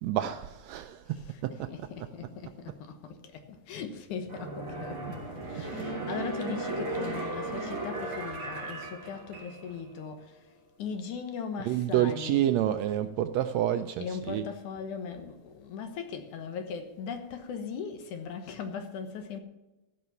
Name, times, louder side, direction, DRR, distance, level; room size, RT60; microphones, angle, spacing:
voice 1, 0.0-2.1 5.1-5.2 5.5-5.6 11.6-14.4, right 12 dB, 80° right, 1.6 m, -29 dB
voice 2, 1.1-10.4 10.8-12.4 14.0-19.4, left 6 dB, 75° left, 2.7 m, -39 dB
sound 1, 4.2-9.8 10.2-10.3, right 2 dB, 30° right, 4.0 m, -36 dB
15.5 x 5.9 x 7.0 m
omnidirectional pair, 3.5 m